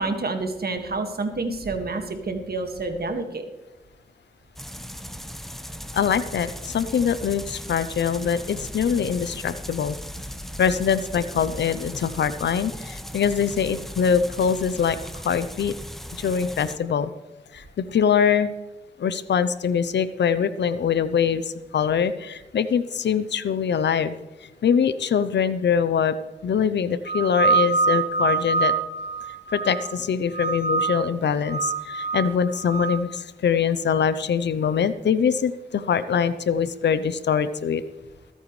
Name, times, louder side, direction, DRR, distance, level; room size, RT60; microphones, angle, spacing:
voice 1, 0.0-3.5, right 3 dB, 65° right, 6 dB, 1.9 m, -28 dB
sound 1, 4.6-16.8, equal, ahead, 1.1 m, -38 dB
voice 2, 5.9-10.0 10.6-15.7 16.2-17.1 17.5-18.5 19.0-24.2 24.6-26.2 26.4-28.7 29.5-37.8, left 7 dB, 90° left, 14 dB, 0.7 m, -23 dB
sound 2, 27.1-30.0 30.3-31.1 31.5-33.0, right 4 dB, 45° right, 1.3 m, -25 dB
21.5 x 9.2 x 3.2 m, 1.1 s
cardioid pair, 50°, 18 cm